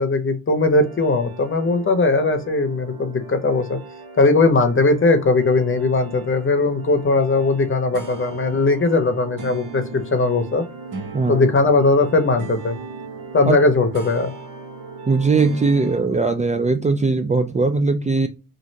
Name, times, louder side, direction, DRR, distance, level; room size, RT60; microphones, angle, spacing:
voice 1, 0.0-3.8 4.2-10.6 11.3-12.8 13.3-14.3, left 3 dB, 40° left, 7 dB, 0.8 m, -19 dB
sound 1, 0.6-16.0, right 4 dB, 80° right, 1.0 m, -37 dB
voice 2, 11.1-11.5 13.5-13.6 15.1-18.3, right 3 dB, 20° right, 7 dB, 0.4 m, -19 dB
3.1 x 2.5 x 2.7 m, 0.29 s
cardioid pair, 80°, 33 cm